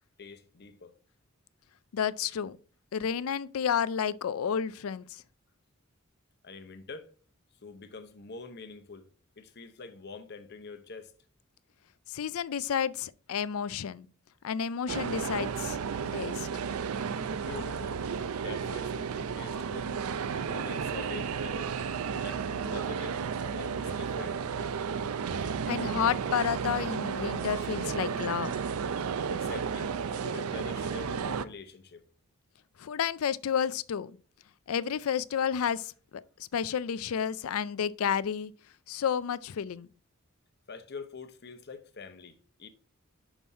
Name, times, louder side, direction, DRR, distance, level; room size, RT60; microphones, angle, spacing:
voice 1, 0.2-0.9 6.4-7.1 7.6-9.1 9.4-11.1 17.3-18.0 18.4-19.9 20.5-21.7 22.2-24.4 29.3-29.9 30.2-32.0 40.7-42.7, left 4 dB, 50° left, 0.8 m, -45 dB
voice 2, 1.9-2.6 2.9-5.2 12.1-14.1 14.4-15.8 16.1-16.5 25.7-28.5 32.8-34.1 34.7-38.5 38.9-39.9, left 8 dB, 80° left, 0.4 m, -31 dB
sound 1, 14.9-31.4, right 6 dB, 85° right, 0.5 m, -33 dB
6.0 x 5.4 x 4.2 m
head